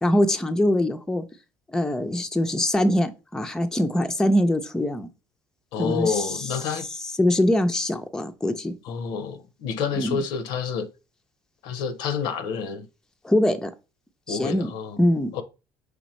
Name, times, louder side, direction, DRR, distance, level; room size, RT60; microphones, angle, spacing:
voice 1, 0.0-1.2 1.7-5.1 5.8-6.3 7.2-8.7 9.9-10.2 13.2-13.7 14.3-14.7 15.0-15.3, left 1 dB, 10° left, 0.4 m, -23 dB
voice 2, 5.7-6.8 8.8-10.9 11.6-12.9 14.3-15.0 15.3-15.4, left 6 dB, 80° left, 0.7 m, -28 dB
5.1 x 3.4 x 3.0 m
cardioid pair, 125°, 8 cm